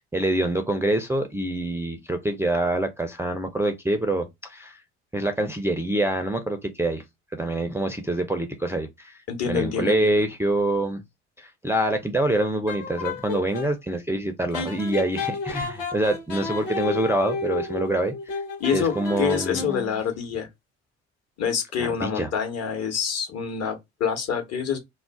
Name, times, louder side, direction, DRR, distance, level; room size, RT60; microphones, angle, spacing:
voice 1, 0.0-4.8 5.1-7.0 7.3-9.2 9.5-11.0 11.4-18.4 18.7-19.7 21.8-22.3, right 1 dB, 5° right, 0.4 m, -25 dB
voice 2, 9.3-10.2 18.6-20.5 21.4-24.8, left 7 dB, 45° left, 1.1 m, -26 dB
sound 1, 12.3-13.7 14.5-20.0, left 4 dB, 65° left, 1.3 m, -32 dB
2.4 x 2.0 x 3.5 m
hypercardioid pair, 60°, 35 cm